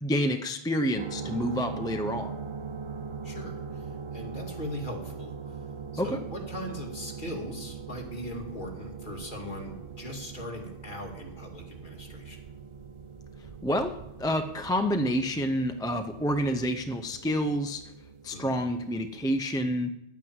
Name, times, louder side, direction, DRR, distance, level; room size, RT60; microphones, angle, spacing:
voice 1, 0.0-2.3 6.0-6.2 13.6-13.9 14.2-17.8 18.2-19.9, equal, 5° left, 6 dB, 0.5 m, -28 dB
sound 1, 1.0-19.3, right 5 dB, 50° right, 0.3 m, -41 dB
voice 2, 3.2-12.4 18.3-18.5, left 1 dB, 45° left, 0 dB, 2.6 m, -40 dB
10.5 x 9.2 x 8.0 m, 0.83 s
omnidirectional pair, 1.2 m